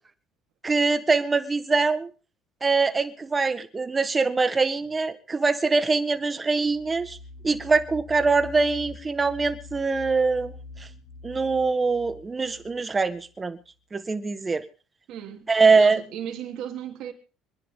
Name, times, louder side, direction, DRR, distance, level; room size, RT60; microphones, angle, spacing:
voice 1, 0.6-2.1 2.6-7.2 7.4-10.9 11.2-13.6 13.9-14.7 15.5-16.0, right 4 dB, 20° right, 1.5 m, -23 dB
sound 1, 6.6-13.3, left 3 dB, 75° left, 4.4 m, -44 dB
voice 2, 15.1-17.1, right 9 dB, 65° right, 3.3 m, -36 dB
26.5 x 10.5 x 3.8 m
cardioid pair, 105°, 0 cm